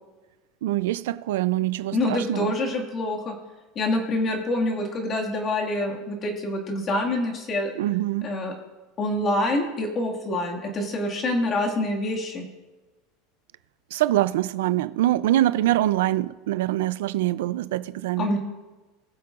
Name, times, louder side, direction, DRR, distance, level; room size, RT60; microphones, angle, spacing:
voice 1, 0.6-2.5 7.8-8.4 13.9-18.4, right 14 dB, 85° right, 0.4 m, -24 dB
voice 2, 1.9-3.4 3.8-7.7 8.2-8.5 9.0-12.4 18.2-18.4, left 1 dB, 25° left, 1.9 m, -26 dB
21.0 x 7.5 x 2.5 m
supercardioid pair, 160°, 0 cm